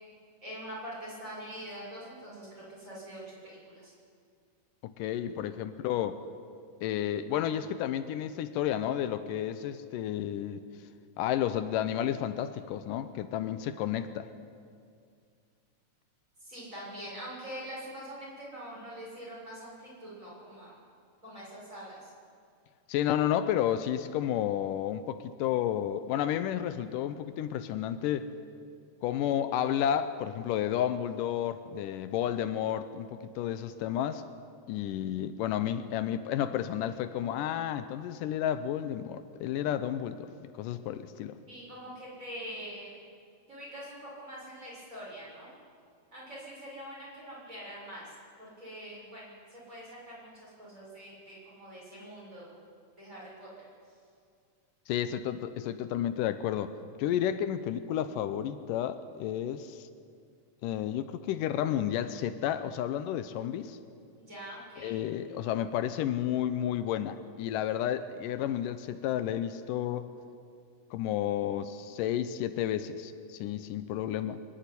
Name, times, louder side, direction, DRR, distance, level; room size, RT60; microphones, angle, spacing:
voice 1, 0.4-3.9 16.4-20.8 21.2-22.1 41.5-42.9 43.5-45.5 46.1-52.5 53.0-53.6 64.3-65.0, equal, 20° right, -6 dB, 7.4 m, -44 dB
voice 2, 4.8-6.2 6.8-10.7 11.2-14.3 22.9-28.3 29.0-34.3 34.7-40.3 40.6-41.4 54.9-56.7 57.0-59.9 60.6-63.8 64.8-70.0 70.9-74.4, left 10 dB, 85° left, 11 dB, 2.3 m, -31 dB
24.0 x 11.5 x 9.9 m, 2.3 s
omnidirectional pair, 3.8 m